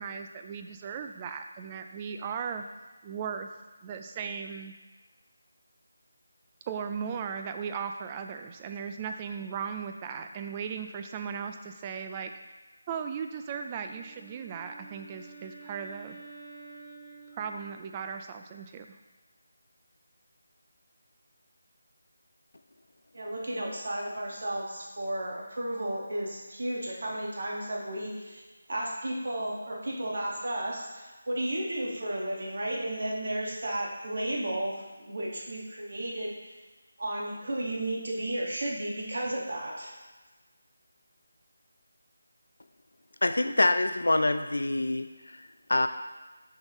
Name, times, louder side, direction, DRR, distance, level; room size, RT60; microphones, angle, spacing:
voice 1, 0.0-2.6 3.0-3.5 3.8-4.7 6.7-12.3 12.9-16.2 17.4-19.0, right 6 dB, 15° right, 6 dB, 0.3 m, -37 dB
Wind instrument woodwind instrument, 13.6-18.2, right 4 dB, ahead, 1.6 m, -50 dB
voice 2, 23.1-28.4 28.7-36.4 37.0-39.9, right 1 dB, 65° right, -2 dB, 1.6 m, -33 dB
voice 3, 43.2-45.1 45.7-45.9, left 2 dB, 90° left, 9 dB, 0.4 m, -25 dB
6.6 x 5.6 x 3.1 m, 1.2 s
figure-of-eight pair, 170°, 0 cm